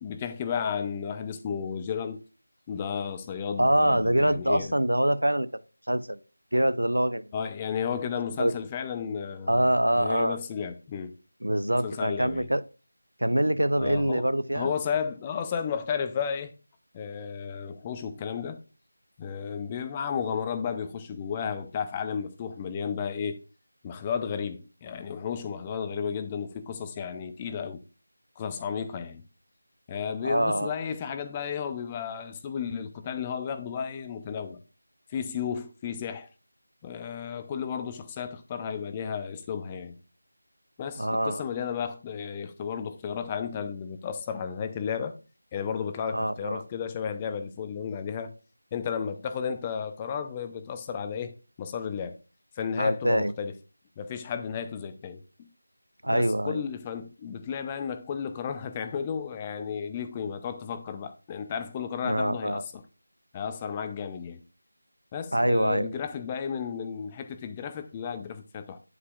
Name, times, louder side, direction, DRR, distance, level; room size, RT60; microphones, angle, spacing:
voice 1, 0.0-2.2 2.7-4.7 7.3-9.7 9.9-11.1 11.8-12.5 13.8-16.5 16.9-18.6 19.2-23.4 23.8-27.8 28.4-29.2 29.9-34.6 35.1-36.3 36.8-39.9 40.8-45.2 45.5-48.3 48.7-52.2 52.6-53.5 54.0-55.5 56.1-62.8 63.3-64.4 65.1-68.8, left 7 dB, 15° left, 0.6 m, -33 dB
voice 2, 3.6-5.5 5.9-6.2 6.5-7.3 8.4-8.5 9.5-10.4 11.4-12.6 13.2-14.7 30.2-30.7 41.0-41.4 46.1-46.6 52.8-53.3 56.0-56.6 62.0-62.6 65.3-65.9, right 1 dB, 80° right, 0.8 m, -24 dB
9.5 x 8.3 x 2.4 m
figure-of-eight pair, 165°, 0 cm